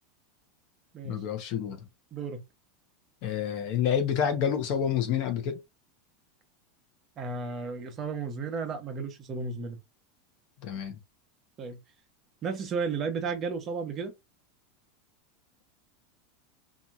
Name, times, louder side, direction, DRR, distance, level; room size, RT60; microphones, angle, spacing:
voice 1, 1.0-1.8 3.2-5.6 10.6-11.0, left 8 dB, 55° left, 0.9 m, -28 dB
voice 2, 2.1-2.4 7.2-9.8 11.6-11.8 12.4-14.1, right 5 dB, 30° right, 0.8 m, -33 dB
2.8 x 2.6 x 2.4 m
supercardioid pair, 135°, 0 cm